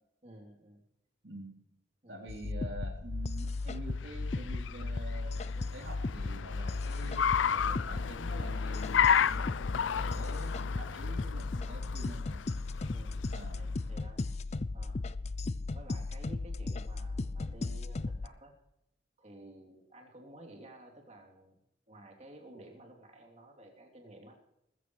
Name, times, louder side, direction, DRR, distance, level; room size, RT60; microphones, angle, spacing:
voice 1, 0.2-0.8 2.0-2.2 12.9-13.2 13.5-14.2 14.7-15.0 15.7-18.6 19.2-21.6 21.9-24.4, right 1 dB, 35° right, 1 dB, 3.2 m, -53 dB
voice 2, 2.1-9.7 9.9-12.4 13.3-13.6, right 2 dB, 75° right, 0 dB, 3.8 m, -47 dB
sound 1, 2.3-18.3, left 3 dB, 35° left, 0.5 m, -36 dB
Car, 3.6-13.9, left 8 dB, 90° left, 0.5 m, -33 dB
21.5 x 14.5 x 3.3 m, 0.84 s
head